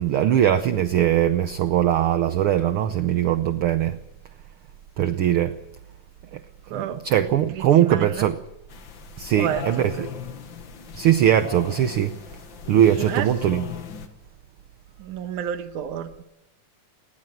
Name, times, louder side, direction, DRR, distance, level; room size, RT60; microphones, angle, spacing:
voice 1, 0.0-4.0 5.0-5.6 6.3-6.4 6.7-8.4 9.2-10.1 11.0-12.2 12.7-13.6, right 11 dB, 70° right, 1.3 m, -21 dB
voice 2, 6.6-7.0 7.5-8.3 9.4-10.1 13.0-13.3 15.0-16.2, right 9 dB, 90° right, 2.6 m, -31 dB
sound 1, 8.7-14.1, left 8 dB, 50° left, 1.8 m, -38 dB
20.0 x 17.5 x 8.0 m
omnidirectional pair, 3.5 m